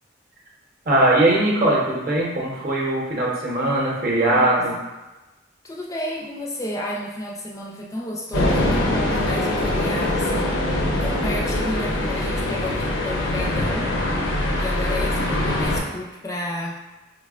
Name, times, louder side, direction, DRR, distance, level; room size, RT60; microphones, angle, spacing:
voice 1, 0.9-4.7, right 1 dB, 45° right, -4 dB, 0.7 m, -20 dB
voice 2, 5.6-10.6 11.0-14.0 14.6-16.8, left 1 dB, 15° left, -2 dB, 0.4 m, -31 dB
sound 1, 8.3-15.8, left 1 dB, 85° left, 0.6 m, -23 dB
4.7 x 2.1 x 2.3 m, 1.1 s
head